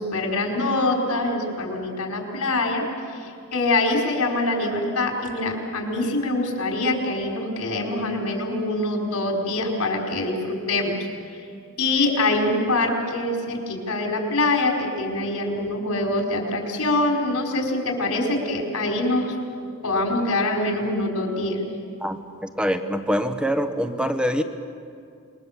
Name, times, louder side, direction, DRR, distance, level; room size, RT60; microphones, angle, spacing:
voice 1, 0.0-2.9 3.1-11.0 11.3-11.4 11.8-19.3 19.8-21.6, left 2 dB, 90° left, 1 dB, 4.7 m, -24 dB
voice 2, 22.0-24.4, equal, 5° right, 7 dB, 1.2 m, -24 dB
28.0 x 22.0 x 7.4 m, 2.3 s
head